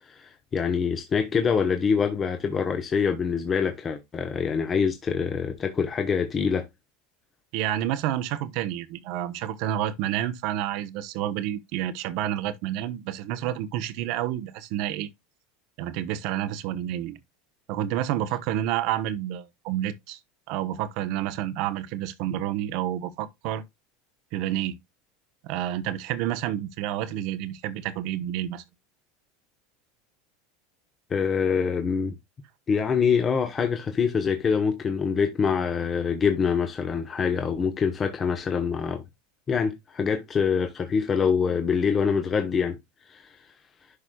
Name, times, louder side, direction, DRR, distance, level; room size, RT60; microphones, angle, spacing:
voice 1, 0.1-6.7 31.1-32.2 32.7-39.0 39.5-42.8 43.1-43.3, left 6 dB, 30° left, 1.1 m, -25 dB
voice 2, 7.5-15.1 15.8-17.2 17.7-20.2 20.5-23.6 24.3-24.8 25.4-28.6, right 12 dB, 60° right, 0.9 m, -29 dB
11.5 x 4.9 x 2.3 m
supercardioid pair, 105°, 0 cm